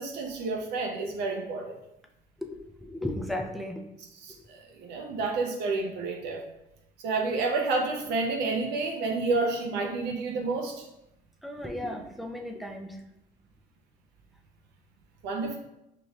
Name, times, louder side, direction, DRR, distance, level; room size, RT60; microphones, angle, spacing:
voice 1, 0.0-1.8 4.2-6.4 7.0-10.8 15.2-15.6, right 3 dB, 80° right, 2 dB, 0.6 m, -30 dB
voice 2, 2.4-3.7 11.4-13.0, left 1 dB, ahead, 3 dB, 0.5 m, -35 dB
4.6 x 2.5 x 3.0 m, 0.87 s
cardioid pair, 110°, 17 cm